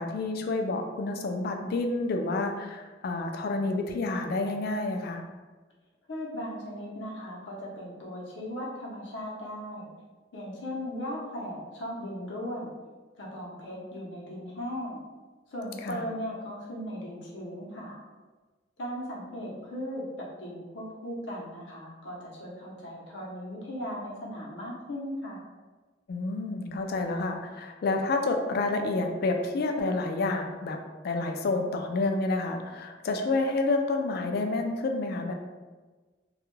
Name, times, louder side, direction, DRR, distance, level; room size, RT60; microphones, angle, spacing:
voice 1, 0.0-5.3 15.8-16.0 26.1-30.8 31.0-35.3, left 2 dB, 55° left, 4 dB, 0.3 m, -29 dB
voice 2, 6.1-9.9 10.3-12.7 13.2-15.0 15.5-18.0 18.8-20.0 20.4-25.4, equal, 80° left, -4 dB, 0.7 m, -37 dB
2.3 x 2.1 x 3.0 m, 1.3 s
head